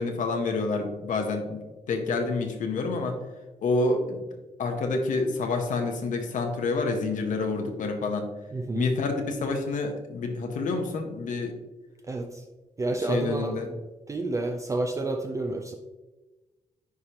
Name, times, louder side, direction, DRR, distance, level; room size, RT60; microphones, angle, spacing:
voice 1, 0.0-1.6 1.9-3.2 3.6-4.2 4.6-8.3 8.7-11.5 13.0-13.7, left 3 dB, 80° left, 4 dB, 1.0 m, -28 dB
voice 2, 8.5-8.9 12.1-12.3 12.8-13.6 14.1-15.7, right 2 dB, 25° right, 4 dB, 0.5 m, -29 dB
9.7 x 5.0 x 2.9 m, 1.2 s
wide cardioid pair, 150°, 13 cm